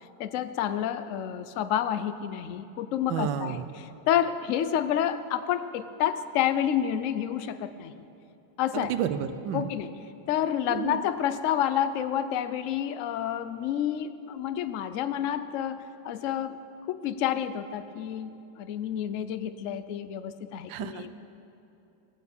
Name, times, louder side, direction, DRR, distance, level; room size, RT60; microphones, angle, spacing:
voice 1, 0.2-7.9 8.6-8.9 9.5-10.0 10.3-16.6 16.9-21.1, left 10 dB, 70° left, 12 dB, 0.7 m, -29 dB
voice 2, 3.1-3.7 8.7-9.7 10.7-11.0 20.7-21.1, right 9 dB, 90° right, 11 dB, 1.4 m, -31 dB
18.0 x 6.9 x 8.3 m, 2.9 s
omnidirectional pair, 2.0 m